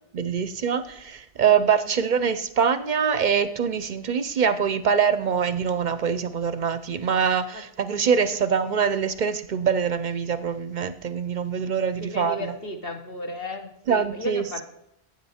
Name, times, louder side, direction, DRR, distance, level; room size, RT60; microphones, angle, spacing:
voice 1, 0.1-12.5 13.9-14.4, right 7 dB, 55° right, 13 dB, 0.6 m, -24 dB
voice 2, 1.4-1.9 7.5-7.6 12.0-14.6, left 1 dB, 60° left, 5 dB, 1.5 m, -35 dB
12.5 x 8.6 x 4.3 m, 0.78 s
omnidirectional pair, 1.1 m